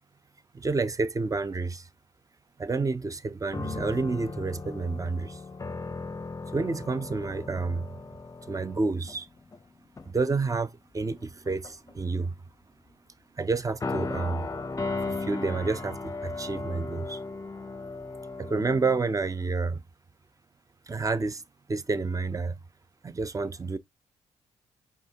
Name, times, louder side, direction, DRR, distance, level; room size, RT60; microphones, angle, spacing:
voice 1, 0.5-1.9 2.6-5.4 6.5-8.0 8.5-9.3 10.0-12.3 13.4-14.5 15.1-17.2 18.4-19.8 20.9-21.4 21.7-22.6 23.0-23.8, right 3 dB, 25° right, 0.6 m, -29 dB
sound 1, 3.5-9.6 10.0-10.2 11.2-11.9 13.8-19.0, left 3 dB, 25° left, 0.6 m, -36 dB
5.2 x 3.5 x 2.8 m
cardioid pair, 60°, 13 cm